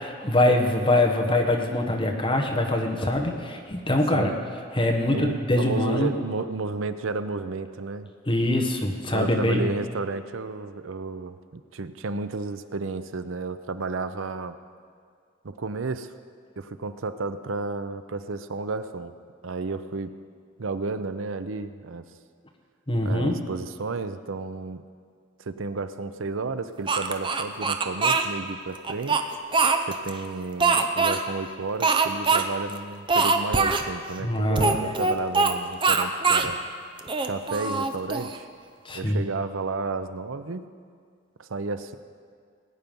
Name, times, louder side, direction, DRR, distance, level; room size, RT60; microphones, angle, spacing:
voice 1, 0.2-4.3 4.7-6.1 8.3-9.7 22.9-23.4 34.2-34.8 38.8-39.2, left 1 dB, 25° left, 1 dB, 1.4 m, -23 dB
voice 2, 5.1-8.1 9.1-14.5 15.4-16.1 16.6-19.1 19.4-20.1 20.6-22.0 23.0-24.8 25.4-29.3 29.9-36.6 37.2-38.5 38.9-40.7 41.4-42.0, right 3 dB, 90° right, 11 dB, 0.7 m, -32 dB
Speech, 26.9-28.3 28.8-30.1 30.6-31.2 31.8-32.4 32.7-32.8 33.1-33.9 34.6-35.5 35.8-36.5 37.0-38.4, right 4 dB, 25° right, 0.7 m, -22 dB
19.0 x 9.3 x 5.4 m, 2.1 s
head